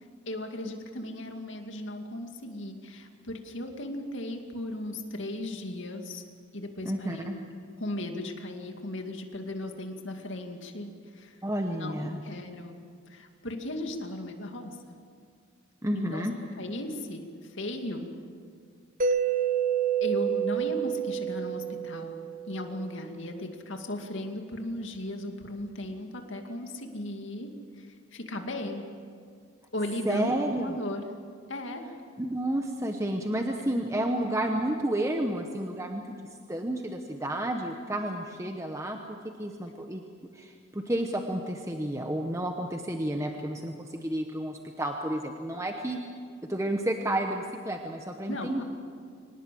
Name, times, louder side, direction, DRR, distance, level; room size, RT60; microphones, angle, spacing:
voice 1, 0.3-6.2 6.5-7.4 7.8-11.4 11.8-12.8 13.1-14.8 15.9-16.2 16.6-18.1 20.0-28.9 29.7-31.0 31.5-31.9 33.6-33.7 34.0-34.1 48.3-48.6, left 1 dB, 65° left, 4 dB, 2.3 m, -36 dB
voice 2, 6.8-7.3 11.4-12.2 15.8-16.3 30.1-30.7 32.2-40.0 40.3-46.0 46.5-48.6, right 1 dB, 15° right, 3 dB, 1.0 m, -31 dB
Mallet percussion, 19.0-22.8, right 8 dB, 40° right, 1.1 m, -28 dB
24.5 x 19.0 x 7.7 m, 2.2 s
head